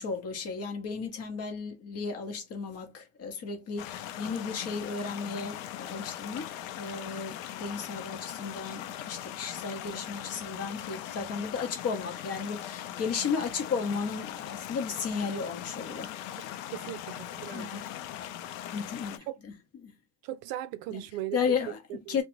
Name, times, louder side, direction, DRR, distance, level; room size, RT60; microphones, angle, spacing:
voice 1, 0.0-6.5 6.8-16.5 17.5-17.9 18.7-19.5 19.8-19.9 20.9-21.0 21.3-21.8 22.1-22.2, left 5 dB, 35° left, 0.8 m, -34 dB
sound 1, 3.8-19.2, left 11 dB, 75° left, 0.6 m, -40 dB
voice 2, 16.7-17.9 19.3-19.4 20.2-21.4 21.9-22.2, right 14 dB, 60° right, 0.5 m, -38 dB
2.4 x 2.2 x 2.9 m
supercardioid pair, 105°, 40 cm